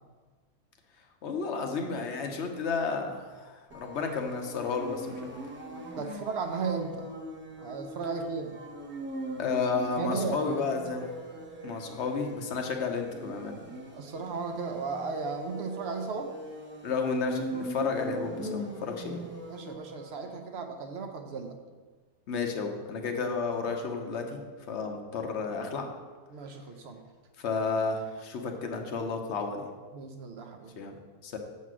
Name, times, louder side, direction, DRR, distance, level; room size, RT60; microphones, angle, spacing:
voice 1, 1.2-5.3 9.4-11.1 11.6-13.6 16.8-19.2 22.3-24.4 24.7-25.9 27.4-29.7 30.8-31.4, left 4 dB, 55° left, 4 dB, 0.9 m, -32 dB
sound 1, 3.7-20.3, right 1 dB, 10° right, 0.6 m, -41 dB
voice 2, 6.0-7.1 7.6-8.6 10.0-10.7 13.9-16.3 19.5-21.6 26.3-27.0 29.9-30.7, right 5 dB, 60° right, 5 dB, 0.7 m, -35 dB
7.0 x 4.2 x 6.1 m, 1.4 s
omnidirectional pair, 1.7 m